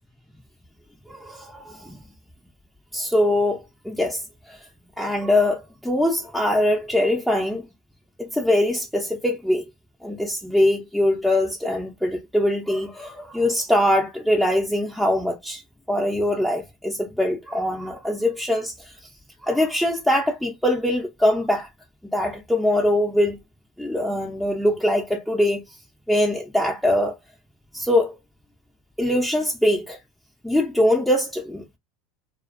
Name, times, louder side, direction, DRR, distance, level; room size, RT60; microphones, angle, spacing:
voice 1, 1.1-2.0 2.9-4.7 5.0-7.7 8.2-9.7 10.0-15.6 15.9-18.9 19.4-21.7 22.1-23.4 23.8-25.6 26.1-27.2 27.7-28.2 29.0-30.0 30.4-31.8, left 1 dB, ahead, 0.5 m, -22 dB
2.4 x 2.3 x 2.4 m
supercardioid pair, 110°, 0 cm